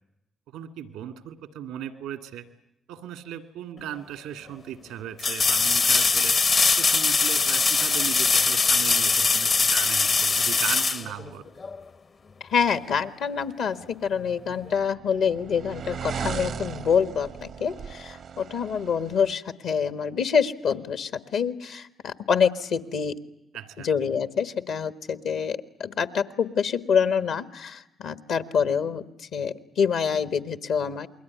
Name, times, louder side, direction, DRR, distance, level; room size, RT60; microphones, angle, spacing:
voice 1, 0.5-2.5 2.9-6.4 6.6-11.4 23.5-23.9, right 10 dB, 85° right, 8 dB, 1.9 m, -37 dB
sound 1, 3.8-3.9 5.2-11.8 14.7-14.8, left 4 dB, 50° left, 0.9 m, -22 dB
voice 2, 12.5-23.1 23.8-29.0 29.3-31.1, left 6 dB, 75° left, 11 dB, 1.5 m, -26 dB
sound 2, 14.4-19.3, right 7 dB, 65° right, 0.9 m, -37 dB
28.5 x 22.0 x 9.5 m, 0.90 s
hypercardioid pair, 45°, 0 cm